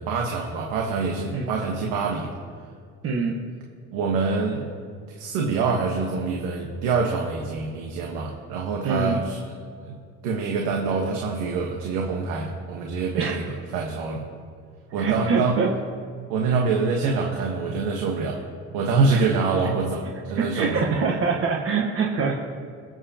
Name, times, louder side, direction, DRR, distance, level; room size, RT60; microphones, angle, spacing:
voice 1, 0.0-2.3 3.9-4.7 5.2-9.4 9.8-10.0 10.2-14.2 14.9-15.5 16.3-18.4 18.7-20.0 20.3-20.8, right 4 dB, 85° right, 0 dB, 1.3 m, -25 dB
voice 2, 3.0-3.3 8.8-9.2 13.2-13.3 15.0-15.7 16.5-16.6 19.1-19.2 20.4-22.4, right 5 dB, 45° right, 0 dB, 1.2 m, -24 dB
23.0 x 7.7 x 2.9 m, 2.2 s
cardioid pair, 110°, 31 cm